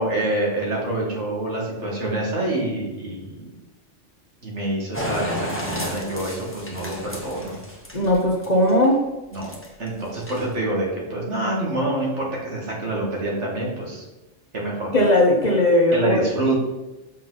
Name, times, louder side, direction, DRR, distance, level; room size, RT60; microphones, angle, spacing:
voice 1, 0.0-3.3 4.4-7.6 9.3-9.5 9.8-14.0 14.5-14.9 15.9-16.6, right 2 dB, 70° right, -3 dB, 2.3 m, -26 dB
sound 1, 4.9-8.9 9.3-9.9 10.1-10.6, left 1 dB, 10° left, 1.0 m, -32 dB
voice 2, 7.9-9.0 14.9-16.3, left 1 dB, 40° left, 0 dB, 1.1 m, -18 dB
7.2 x 5.3 x 4.0 m, 1.0 s
omnidirectional pair, 1.3 m